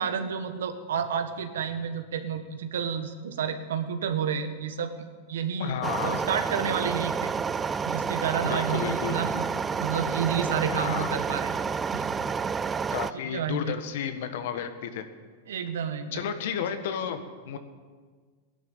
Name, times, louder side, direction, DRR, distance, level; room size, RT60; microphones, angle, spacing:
voice 1, 0.0-4.9 5.3-7.3 7.8-9.4 9.8-11.5 11.9-12.1 13.1-13.8 15.5-16.3, right 7 dB, 85° right, 8 dB, 1.4 m, -30 dB
voice 2, 5.6-6.2 8.4-9.2 10.7-11.1 12.9-15.0 16.1-17.6, left 8 dB, 70° left, 9 dB, 1.4 m, -32 dB
sound 1, 5.8-13.1, right 5 dB, 20° right, 0.4 m, -29 dB
16.5 x 11.0 x 7.2 m, 1.5 s
hypercardioid pair, 120°, 0 cm